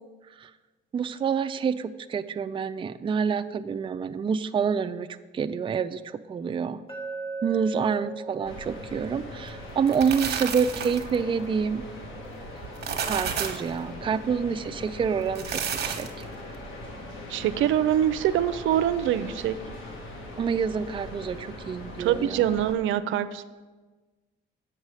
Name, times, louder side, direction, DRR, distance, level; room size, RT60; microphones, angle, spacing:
voice 1, 0.9-5.1 5.3-6.8 7.4-11.8 13.0-15.5 15.8-16.2 20.4-22.6, right 6 dB, 25° right, 10 dB, 0.4 m, -27 dB
Glass, 6.9-11.0, right 3 dB, 30° left, 2.1 m, -39 dB
sound 1, 8.4-22.7, left 1 dB, 85° left, 1.5 m, -41 dB
sound 2, 9.7-11.2 12.6-13.7 15.2-16.2, right 7 dB, 55° right, 1.1 m, -31 dB
voice 2, 17.3-19.6 22.0-23.4, right 11 dB, 80° right, 12 dB, 0.5 m, -24 dB
8.1 x 5.4 x 6.4 m, 1.3 s
cardioid pair, 90°, 20 cm